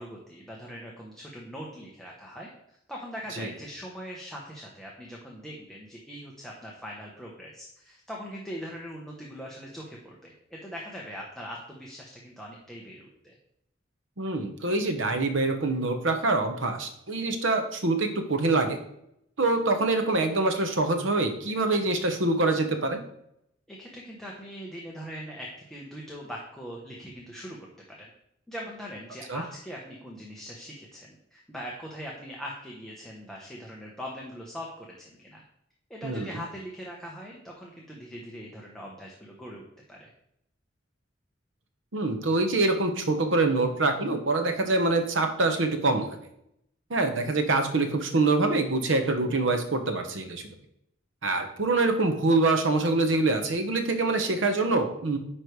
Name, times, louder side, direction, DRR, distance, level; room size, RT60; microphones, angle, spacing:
voice 1, 0.0-2.5 2.9-13.3 23.7-27.6 27.9-28.1 28.5-35.4 35.9-39.6 39.9-40.1, equal, 5° left, -3 dB, 1.0 m, -41 dB
voice 2, 14.2-18.8 19.4-23.0 29.3-29.4 36.0-36.4 41.9-46.2 46.9-50.5 51.2-55.2, right 2 dB, 80° right, 6 dB, 1.0 m, -25 dB
9.7 x 3.3 x 4.7 m, 0.77 s
head